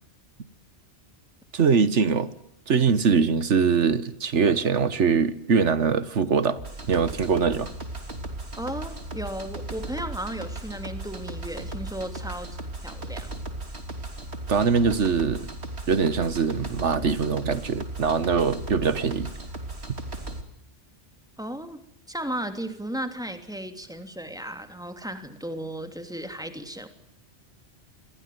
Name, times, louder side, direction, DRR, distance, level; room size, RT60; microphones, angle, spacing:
voice 1, 1.5-2.3 2.7-6.6 6.9-7.7 14.5-15.5 15.9-19.3, right 5 dB, 85° right, 1.6 m, -22 dB
sound 1, 6.5-20.4, right 2 dB, 65° right, 3.5 m, -36 dB
voice 2, 8.6-13.3 21.4-21.8 22.1-26.9, right 1 dB, 5° right, 3.1 m, -35 dB
28.0 x 22.0 x 9.4 m
omnidirectional pair, 1.2 m